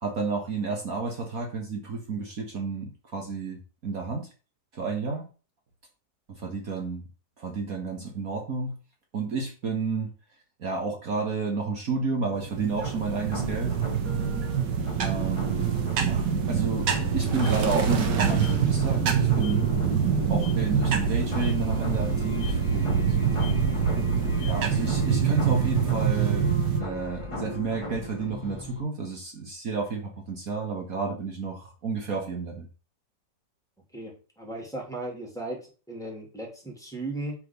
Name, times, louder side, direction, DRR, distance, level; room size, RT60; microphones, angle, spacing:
voice 1, 0.0-4.3 4.7-5.3 6.3-7.1 7.4-8.7 9.1-10.1 10.6-13.8 15.0-15.7 16.0-19.7 20.3-23.2 24.3-32.7, right 4 dB, 55° right, 1 dB, 1.9 m, -31 dB
sound 1, 12.3-26.8, right 7 dB, 80° right, 1.8 m, -25 dB
sound 2, 12.8-28.8, equal, 20° left, 1.5 m, -38 dB
sound 3, 16.9-26.0, left 8 dB, 70° left, 1.2 m, -38 dB
voice 2, 33.9-37.4, right 2 dB, ahead, -1 dB, 2.9 m, -36 dB
6.1 x 5.9 x 5.4 m, 0.34 s
omnidirectional pair, 1.8 m